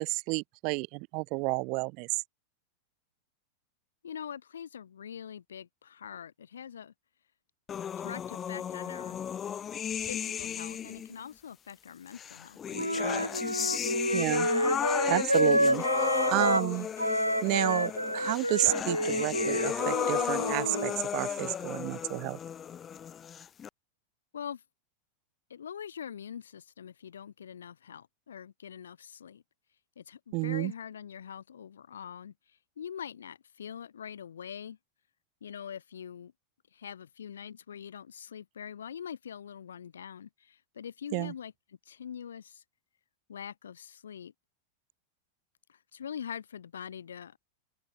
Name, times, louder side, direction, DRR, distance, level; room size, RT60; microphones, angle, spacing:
voice 1, 0.0-2.1 14.1-14.5 15.1-16.9 17.4-22.4 30.3-30.7 41.1-41.3, right 30 dB, 45° right, 1.4 m, -31 dB
voice 2, 4.0-6.9 8.0-9.2 10.1-13.2 24.3-24.6 25.5-29.4 30.0-32.3 32.8-34.8 35.4-36.3 36.7-41.5 41.9-42.6 43.3-44.3 45.7-47.4, left 8 dB, 65° left, 4.1 m, -43 dB
sound 1, 7.7-11.1 12.1-23.7, left 8 dB, 25° left, 1.9 m, -34 dB
Wind instrument woodwind instrument, 12.7-16.7 17.0-20.9, equal, 90° left, 2.5 m, -29 dB
open air
figure-of-eight pair, 90°, 0 cm